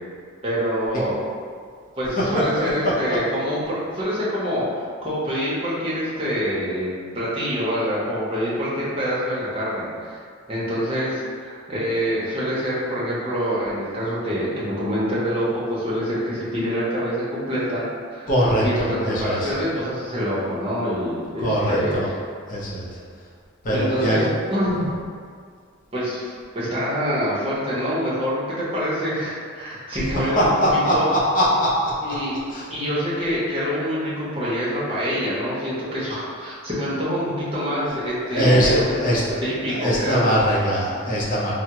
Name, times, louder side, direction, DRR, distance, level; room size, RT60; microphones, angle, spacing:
voice 1, 0.4-1.2 2.0-4.7 5.0-6.9 7.1-10.2 10.5-17.8 18.1-18.3 18.6-22.1 23.7-24.9 25.9-31.1 32.0-32.3 32.7-39.0 39.4-40.4, equal, 25° right, -8 dB, 0.7 m, -26 dB
voice 2, 2.2-2.9 18.3-19.5 21.4-22.1 22.5-22.9 23.6-24.3 30.3-32.1 32.5-32.6 38.1-39.4 39.7-41.5, equal, 40° left, -7 dB, 0.6 m, -21 dB
3.4 x 2.0 x 2.9 m, 2.1 s
head